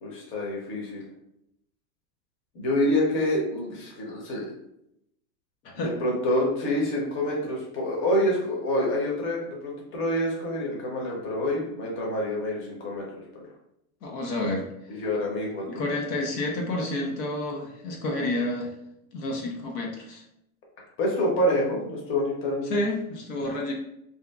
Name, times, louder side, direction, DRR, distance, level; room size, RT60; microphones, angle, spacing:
voice 1, 0.0-1.0 2.5-4.5 5.7-13.0 13.3-13.4 14.9-15.8 21.0-22.7, left 1 dB, 25° left, -2 dB, 0.7 m, -27 dB
voice 2, 14.0-14.7 15.7-18.7 19.1-20.2 22.7-23.7, left 2 dB, 90° left, 0 dB, 0.8 m, -29 dB
2.7 x 2.4 x 2.3 m, 0.78 s
supercardioid pair, 135°, 47 cm